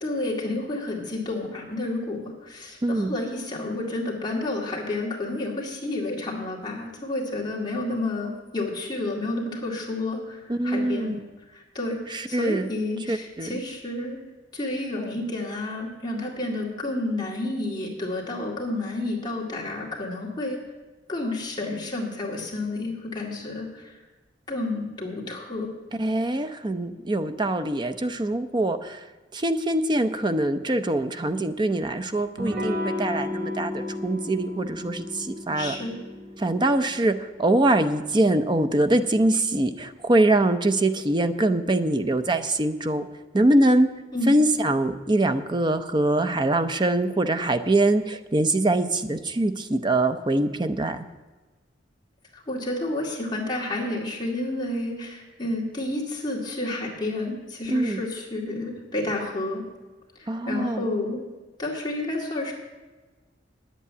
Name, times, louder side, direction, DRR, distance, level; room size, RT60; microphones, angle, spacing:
voice 1, 0.0-11.1 11.5-14.2 14.5-20.6 21.1-23.9 24.5-25.7 35.5-36.0 44.1-44.3 52.3-59.6 60.2-61.2 61.6-62.5, left 2 dB, 25° left, -3 dB, 2.2 m, -30 dB
voice 2, 2.8-3.2 10.5-11.2 12.1-12.7 13.1-13.6 25.9-29.1 29.3-35.7 36.4-43.1 43.3-43.9 44.3-51.0 57.7-58.0 60.3-60.9, right 1 dB, 25° right, 9 dB, 0.6 m, -23 dB
Electric guitar / Strum, 32.4-37.7, left 1 dB, 55° right, 3.2 m, -33 dB
10.0 x 8.3 x 8.6 m, 1.3 s
head